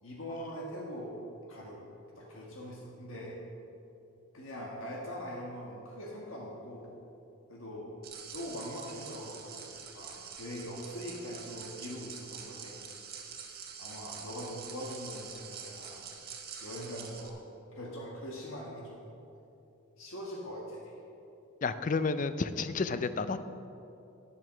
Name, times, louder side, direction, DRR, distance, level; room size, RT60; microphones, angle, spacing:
voice 1, 0.0-1.2 1.5-1.9 2.2-3.4 4.3-6.9 7.5-7.9 8.3-12.9 13.4-16.1 16.6-17.4 17.7-19.0 20.0-20.9, equal, 70° left, -2 dB, 1.4 m, -42 dB
sound 1, 8.0-17.3, right 7 dB, 45° right, 1.2 m, -46 dB
voice 2, 21.6-23.5, left 4 dB, 35° left, 12 dB, 0.4 m, -31 dB
10.0 x 7.7 x 6.1 m, 2.8 s
head